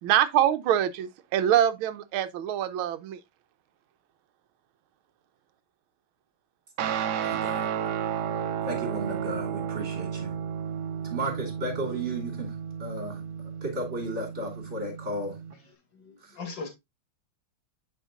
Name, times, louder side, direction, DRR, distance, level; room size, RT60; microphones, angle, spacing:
voice 1, 0.0-3.2, right 11 dB, 90° right, 1.5 m, -24 dB
Guitar, 6.8-15.5, right 8 dB, 65° right, 1.2 m, -33 dB
voice 2, 7.2-7.7 8.6-10.4 11.0-15.4 16.2-16.4, right 1 dB, 35° right, 2.9 m, -34 dB
voice 3, 15.5-16.7, left 4 dB, 60° left, 2.5 m, -40 dB
9.1 x 5.1 x 2.5 m
omnidirectional pair, 2.3 m